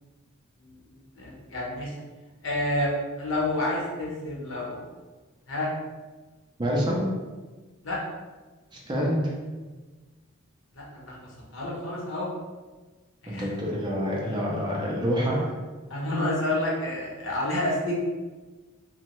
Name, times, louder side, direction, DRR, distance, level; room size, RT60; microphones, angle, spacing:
voice 1, 0.6-1.9 2.4-4.8 5.5-5.7 7.8-8.0 10.7-11.2 11.5-12.3 13.2-13.5 15.9-17.9, left 1 dB, 70° left, -4 dB, 0.8 m, -29 dB
voice 2, 6.6-7.1 8.7-9.3 13.3-15.5, equal, 20° right, -3 dB, 0.4 m, -27 dB
2.7 x 2.1 x 2.9 m, 1.3 s
head